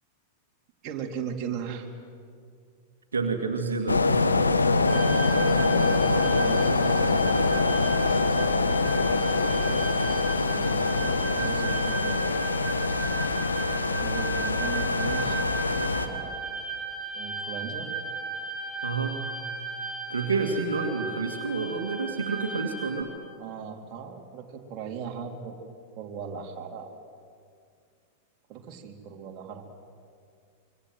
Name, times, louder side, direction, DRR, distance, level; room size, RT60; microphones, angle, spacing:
voice 1, 0.8-1.9 5.3-7.4 9.7-10.0 10.5-12.4 14.0-15.4 15.8-16.4 17.1-17.9 23.4-25.6 26.0-26.9 28.5-29.7, right 6 dB, 40° right, 1 dB, 3.4 m, -38 dB
voice 2, 3.1-4.1 18.8-19.2 20.1-23.1, right 4 dB, 80° right, 3 dB, 2.2 m, -29 dB
sound 1, 3.9-16.1, left 3 dB, 85° left, 1.4 m, -24 dB
sound 2, 4.9-23.0, right 4 dB, 5° right, 5.3 m, -36 dB
26.0 x 24.5 x 7.9 m, 2.2 s
figure-of-eight pair, 95°, 0 cm